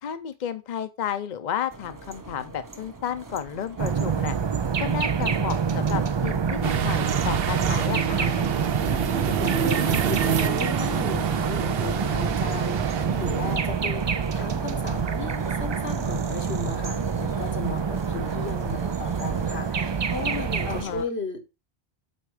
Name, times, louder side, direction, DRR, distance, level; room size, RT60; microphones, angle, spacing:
voice 1, 0.0-4.3 4.8-8.3 20.7-21.1, left 8 dB, 50° left, 0.7 m, -32 dB
sound 1, 1.7-21.0, right 3 dB, 20° right, 0.7 m, -42 dB
sound 2, 3.8-20.8, right 6 dB, 45° right, 0.3 m, -26 dB
sound 3, 6.6-13.6, right 9 dB, 70° right, 0.9 m, -28 dB
voice 2, 9.2-21.4, left 4 dB, 85° left, 1.8 m, -35 dB
8.4 x 4.4 x 4.8 m
omnidirectional pair, 1.1 m